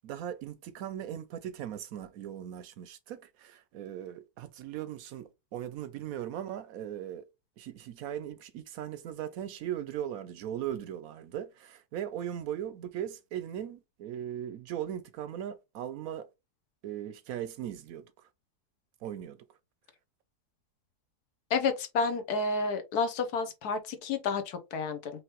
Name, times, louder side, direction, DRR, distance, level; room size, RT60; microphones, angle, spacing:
voice 1, 0.0-7.3 7.6-16.3 16.8-18.1 19.0-19.4, right 10 dB, 70° right, 0.9 m, -38 dB
voice 2, 21.5-25.1, left 4 dB, 75° left, 1.4 m, -30 dB
5.0 x 3.0 x 3.0 m
omnidirectional pair, 1.7 m